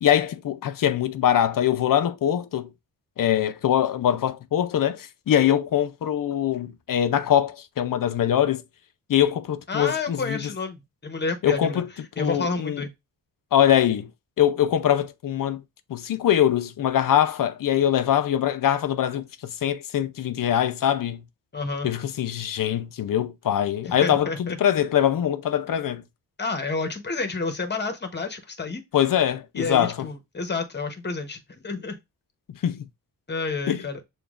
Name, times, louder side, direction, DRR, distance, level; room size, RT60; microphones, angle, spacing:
voice 1, 0.0-2.7 3.2-8.6 9.1-10.4 11.4-11.9 12.2-12.8 13.5-14.1 14.4-15.6 15.9-21.2 21.8-26.0 28.9-30.1 32.6-32.9 33.7-33.8, left 10 dB, 60° left, 0.5 m, -23 dB
voice 2, 9.7-11.8 12.2-12.9 21.5-21.9 23.9-24.6 26.4-28.8 29.6-32.0 33.3-34.0, left 3 dB, 25° left, 0.9 m, -30 dB
6.8 x 2.3 x 2.4 m
cardioid pair, 80°, 38 cm